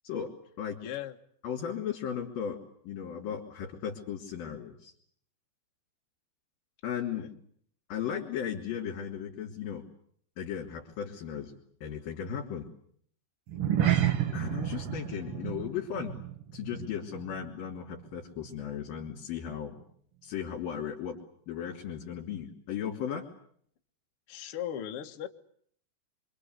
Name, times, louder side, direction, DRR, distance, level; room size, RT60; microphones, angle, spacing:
voice 1, 0.8-1.2 7.1-7.3 24.3-25.3, left 10 dB, 75° left, 4 dB, 1.3 m, -38 dB
voice 2, 1.4-4.9 6.8-7.3 7.9-9.8 10.4-11.5 11.8-12.7 14.3-16.2 16.5-19.8 20.2-21.2 21.5-23.2, left 8 dB, 55° left, -2 dB, 4.8 m, -36 dB
sound 1, 13.5-18.1 18.4-18.7 19.1-19.2, right 11 dB, 80° right, 1.3 m, -31 dB
26.5 x 25.0 x 8.2 m, 0.64 s
omnidirectional pair, 5.2 m